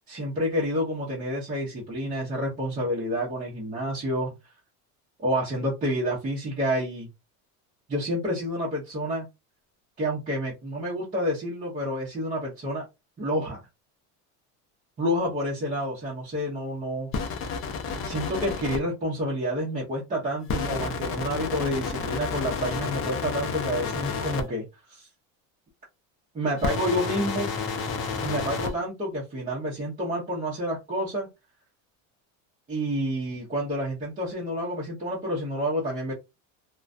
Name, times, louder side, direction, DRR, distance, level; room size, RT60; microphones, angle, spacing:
voice 1, 0.1-4.3 5.2-7.1 7.9-9.3 10.0-12.9 13.2-13.6 15.0-17.1 18.0-25.1 26.3-27.5 28.2-31.3 32.7-36.1, equal, 20° right, 0.8 m, -29 dB
sound 1, 17.1-18.8 20.5-24.4 26.6-28.7, left 5 dB, 35° left, 0.5 m, -30 dB
2.3 x 2.2 x 2.4 m
cardioid pair, 150°, 39 cm